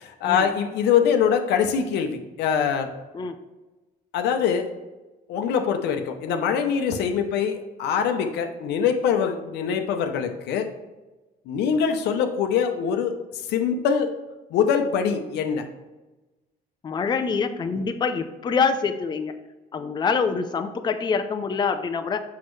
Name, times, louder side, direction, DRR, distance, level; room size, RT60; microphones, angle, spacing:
voice 1, 0.0-2.9 4.1-4.7 5.3-10.7 11.5-14.1 14.5-15.6, left 7 dB, 80° left, 6 dB, 0.8 m, -23 dB
voice 2, 16.8-19.4 19.7-22.2, left 5 dB, 25° left, 7 dB, 0.5 m, -25 dB
6.3 x 5.7 x 3.2 m, 1.1 s
cardioid pair, 110°, 17 cm